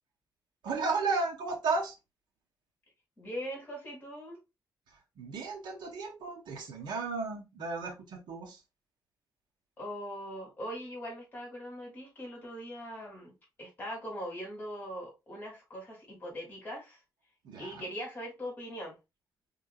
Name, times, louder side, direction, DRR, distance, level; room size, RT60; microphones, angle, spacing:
voice 1, 0.6-1.9 5.2-8.6 17.4-17.9, right 4 dB, 90° right, 1.3 m, -34 dB
voice 2, 3.2-4.4 9.8-13.3 13.6-17.0 17.6-18.9, equal, 25° left, 2.8 m, -41 dB
4.7 x 3.6 x 2.4 m
wide cardioid pair, 150°, 8 cm